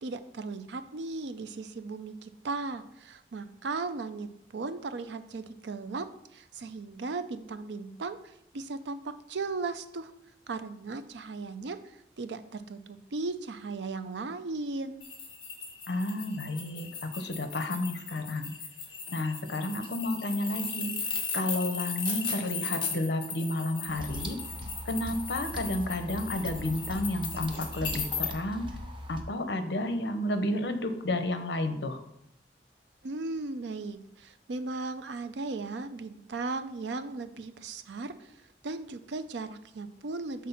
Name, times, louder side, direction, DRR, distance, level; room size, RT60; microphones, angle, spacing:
voice 1, 0.0-6.1 6.3-9.0 9.3-10.1 10.5-11.8 12.2-15.1 33.0-38.3 38.6-40.5, right 3 dB, 80° right, 11 dB, 0.5 m, -37 dB
sound 1, 15.0-28.3, left 5 dB, 25° left, 1.1 m, -37 dB
voice 2, 15.9-18.5 19.1-20.9 21.3-24.4 24.9-28.7 29.1-32.0, left 1 dB, 75° left, 8 dB, 0.7 m, -31 dB
sound 2, 23.9-29.2, equal, 25° right, 0.6 m, -40 dB
5.9 x 3.7 x 5.7 m, 0.76 s
head